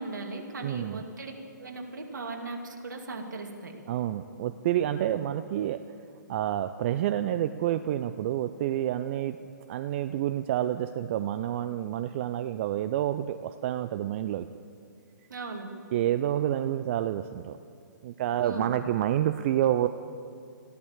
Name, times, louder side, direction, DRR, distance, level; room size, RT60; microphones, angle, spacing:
voice 1, 0.0-1.3 1.6-3.7 5.0-5.2 15.3-15.7 18.4-18.7, right 3 dB, 65° right, 2 dB, 2.4 m, -38 dB
voice 2, 0.6-1.0 3.9-5.8 6.3-9.4 9.7-14.5 15.9-17.6 18.0-19.9, right 12 dB, 35° right, 11 dB, 0.4 m, -28 dB
14.5 x 11.5 x 7.3 m, 2.3 s
figure-of-eight pair, 130°, 11 cm